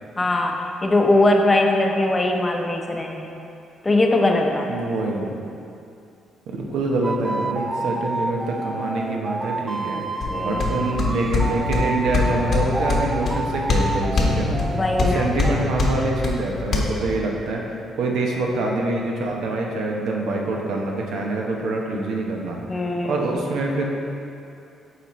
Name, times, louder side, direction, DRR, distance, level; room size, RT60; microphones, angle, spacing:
voice 1, 0.2-3.3 3.8-4.7 10.3-10.6 14.8-15.3 22.7-23.2, left 2 dB, 25° left, 2 dB, 0.6 m, -20 dB
voice 2, 4.7-5.3 6.5-17.7 18.0-22.6 23.0-23.8, right 2 dB, 80° right, 0 dB, 0.8 m, -25 dB
sound 1, 7.0-15.1 15.4-15.7, right 2 dB, 20° right, 0.3 m, -29 dB
sound 2, 10.2-16.8, left 4 dB, 55° left, 1.0 m, -24 dB
8.1 x 4.2 x 3.1 m, 2.7 s
cardioid pair, 90°, 0 cm